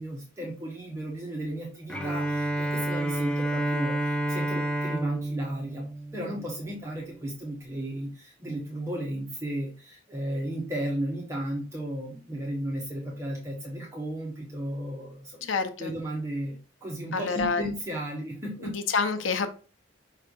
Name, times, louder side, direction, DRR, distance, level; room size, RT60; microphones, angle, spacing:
voice 1, 0.0-5.8 6.1-15.5 15.8-18.7, right 1 dB, 15° right, -2 dB, 1.0 m, -34 dB
Bowed string instrument, 1.9-6.8, right 1 dB, 5° left, 0.7 m, -29 dB
voice 2, 15.4-15.9 17.1-17.6 18.6-19.5, left 5 dB, 80° left, 9 dB, 0.7 m, -28 dB
5.5 x 3.3 x 5.2 m, 0.36 s
head